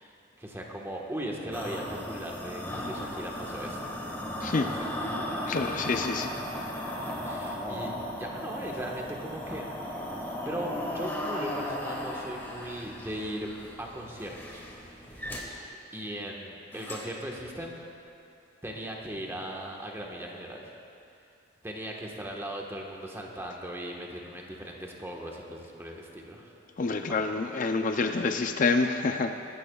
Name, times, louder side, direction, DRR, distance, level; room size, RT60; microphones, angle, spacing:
voice 1, 0.0-3.8 6.9-7.9 8.2-9.7 10.4-13.5 13.8-14.6 15.0-15.3 15.9-17.8 18.6-20.7 21.6-26.5 27.0-27.3, right 1 dB, 15° right, -1 dB, 1.4 m, -38 dB
sound 1, 1.5-15.4 16.7-17.2 17.6-17.7, left 1 dB, 10° left, 1.7 m, -36 dB
voice 2, 5.5-6.3 26.8-29.3, left 3 dB, 45° left, 6 dB, 0.5 m, -27 dB
23.0 x 13.5 x 2.4 m, 2.6 s
head